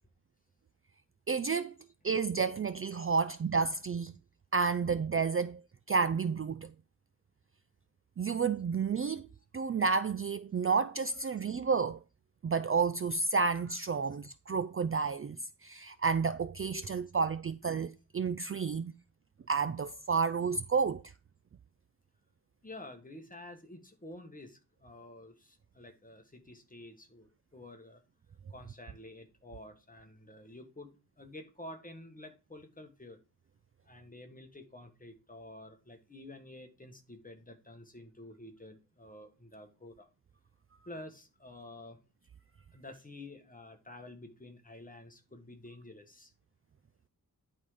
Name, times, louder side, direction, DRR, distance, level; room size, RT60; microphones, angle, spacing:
voice 1, 1.3-1.7 2.0-4.1 4.5-5.6 5.9-6.7 8.2-9.3 9.5-12.0 12.4-15.4 15.6-18.9 19.5-21.0, right 5 dB, 40° right, 0.4 m, -30 dB
voice 2, 22.6-28.0 28.5-33.2 33.9-40.1 40.9-42.0 42.7-46.3, left 1 dB, 20° left, 1.6 m, -50 dB
10.5 x 3.8 x 5.0 m
wide cardioid pair, 100°, 37 cm